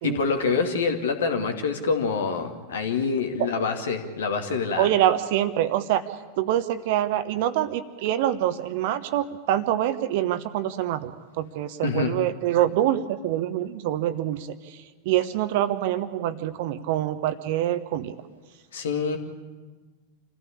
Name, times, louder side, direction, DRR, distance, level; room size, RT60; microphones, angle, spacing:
voice 1, 0.0-4.9 11.8-12.2 18.7-19.2, left 5 dB, 65° left, 5 dB, 2.4 m, -26 dB
voice 2, 4.8-6.1 6.4-18.1, right 12 dB, 50° right, 12 dB, 1.2 m, -25 dB
27.5 x 15.5 x 8.6 m, 1.4 s
figure-of-eight pair, 90°, 0 cm